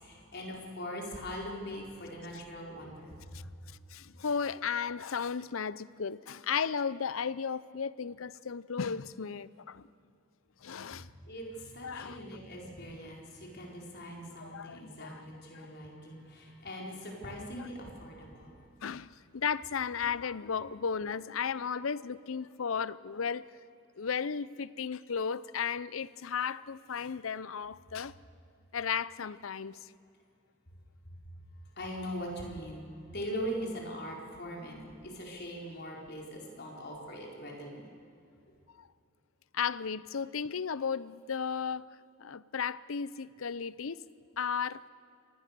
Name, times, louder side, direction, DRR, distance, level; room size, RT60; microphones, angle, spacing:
voice 1, 0.0-3.2 10.9-18.6 31.8-32.8 33.1-37.8, equal, 55° left, 4.7 m, -41 dB
voice 2, 3.9-9.9 10.6-11.1 11.8-12.4 14.4-15.2 15.5-15.7 17.2-17.7 18.8-23.5 24.0-28.1 28.7-29.9 38.8-38.9 39.5-44.0 44.4-44.8, left 6 dB, 80° left, 0.6 m, -35 dB
26.0 x 19.0 x 6.8 m
head